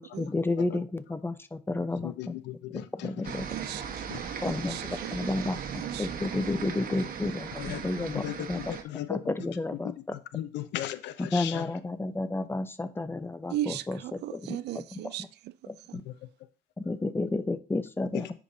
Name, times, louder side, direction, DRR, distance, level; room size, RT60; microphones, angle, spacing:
voice 1, 0.0-2.3 2.7-3.5 4.4-5.6 6.0-8.7 9.1-10.2 11.2-14.0 14.3-14.8 15.7-16.0 16.8-18.3, left 2 dB, 10° left, 0.7 m, -31 dB
voice 2, 2.0-3.3 4.1-4.2 7.6-9.2 9.8-9.9 10.3-11.7 16.1-16.2 18.1-18.3, left 13 dB, 75° left, 0.7 m, -37 dB
sound 1, 3.2-8.8, right 7 dB, 50° right, 1.3 m, -38 dB
voice 3, 3.5-5.5 5.8-6.1 13.5-15.5, right 13 dB, 70° right, 0.5 m, -37 dB
9.9 x 5.1 x 2.8 m
supercardioid pair, 90°, 18 cm